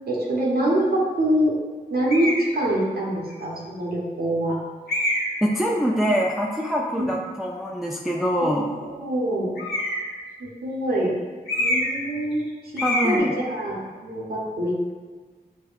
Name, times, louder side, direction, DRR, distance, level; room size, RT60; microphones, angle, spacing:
voice 1, 0.1-1.5 1.9-4.6 7.0-7.1 8.4-9.5 10.4-11.1 11.6-12.5 12.7-14.9, right 1 dB, 75° right, -4 dB, 0.7 m, -25 dB
sound 1, 2.1-2.5 3.3-3.4 4.9-5.4 9.6-10.1 11.5-12.1 12.3-12.5 12.8-13.2, left 1 dB, 80° left, 0.7 m, -25 dB
voice 2, 5.4-8.7 12.8-13.3, equal, ahead, -2 dB, 0.3 m, -24 dB
5.3 x 2.1 x 2.4 m, 1.4 s
cardioid pair, 50°, 16 cm